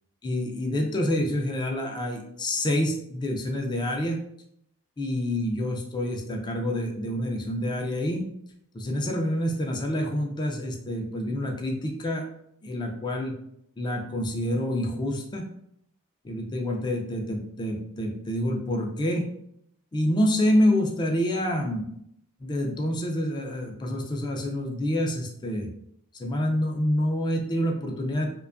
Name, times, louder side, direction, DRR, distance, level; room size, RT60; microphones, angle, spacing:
voice 1, 0.2-4.2 5.0-8.3 8.7-12.2 12.6-13.3 13.8-15.5 16.2-19.3 19.9-21.9 22.4-25.7 26.2-28.3, left 1 dB, 20° left, 1 dB, 0.3 m, -27 dB
2.6 x 2.2 x 2.4 m, 0.74 s
head